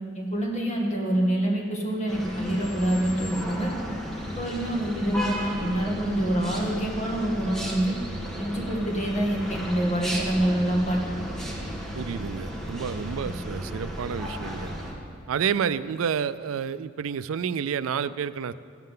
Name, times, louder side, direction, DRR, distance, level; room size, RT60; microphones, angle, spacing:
voice 1, 0.1-3.7 4.2-8.0 8.4-11.0, right 1 dB, 35° left, -2 dB, 2.0 m, -26 dB
sound 1, 2.1-14.9, equal, ahead, 1.6 m, -34 dB
voice 2, 11.9-14.7 15.3-18.5, right 7 dB, 90° right, 15 dB, 0.4 m, -29 dB
15.0 x 13.0 x 3.8 m, 2.2 s
head